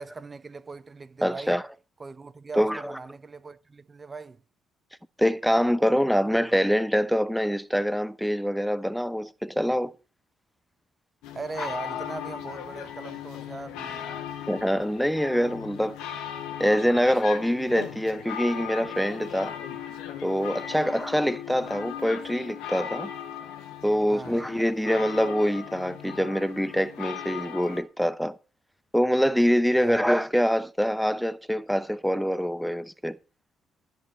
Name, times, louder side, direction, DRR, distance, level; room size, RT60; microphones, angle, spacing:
voice 1, 0.0-1.6 2.0-4.4 5.9-6.0 6.3-6.5 11.3-14.2 20.7-20.9 24.1-24.5 29.8-30.0, right 4 dB, 30° right, 1.0 m, -40 dB
voice 2, 1.2-1.6 2.6-3.0 5.2-9.9 14.5-16.0 16.6-19.6 20.2-23.1 23.8-28.4 28.9-33.2, equal, ahead, 0.8 m, -25 dB
sound 1, 11.2-27.8, left 9 dB, 70° left, 1.1 m, -38 dB
11.0 x 5.4 x 7.4 m
hypercardioid pair, 45°, 0 cm